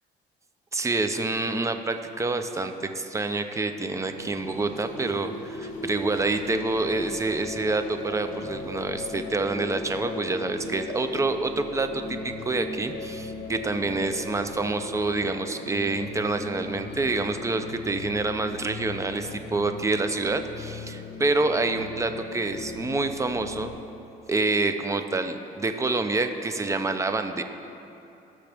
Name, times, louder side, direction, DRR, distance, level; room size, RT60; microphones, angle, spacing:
voice 1, 0.7-23.7 24.3-27.4, right 3 dB, 15° right, 8 dB, 0.6 m, -27 dB
sound 1, 3.9-23.7, left 3 dB, 50° left, 1.5 m, -38 dB
17.5 x 6.2 x 3.5 m, 2.9 s
cardioid pair, 110°, 17 cm